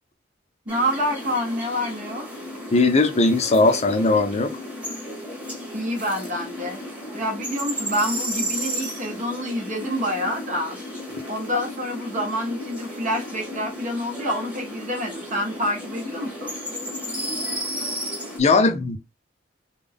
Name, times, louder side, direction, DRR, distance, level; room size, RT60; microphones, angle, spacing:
voice 1, 0.6-2.3 5.7-6.8 7.1-10.8 11.3-16.5, equal, 40° right, 1.3 m, -27 dB
sound 1, 0.7-18.4, equal, 5° right, 1.4 m, -33 dB
voice 2, 2.7-4.5 18.4-19.0, left 3 dB, 35° left, 0.5 m, -19 dB
3.5 x 2.4 x 3.4 m
head